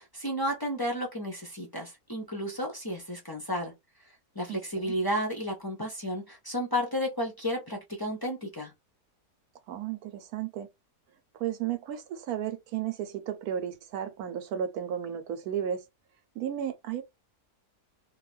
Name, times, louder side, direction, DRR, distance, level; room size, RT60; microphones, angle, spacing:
voice 1, 0.0-3.7 4.3-8.7, equal, 25° left, 0.4 m, -32 dB
voice 2, 4.5-4.9 9.7-10.7 11.3-15.8 16.4-17.0, right 9 dB, 75° right, 1.0 m, -34 dB
2.5 x 2.3 x 3.1 m
omnidirectional pair, 1.6 m